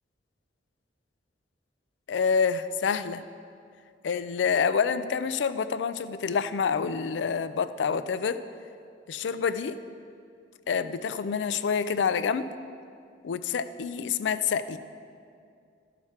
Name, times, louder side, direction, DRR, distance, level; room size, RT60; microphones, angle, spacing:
voice 1, 2.1-3.2 4.0-8.4 9.1-9.8 10.7-12.5 13.2-14.8, left 6 dB, 75° left, 12 dB, 0.4 m, -27 dB
12.5 x 6.0 x 4.4 m, 2.4 s
head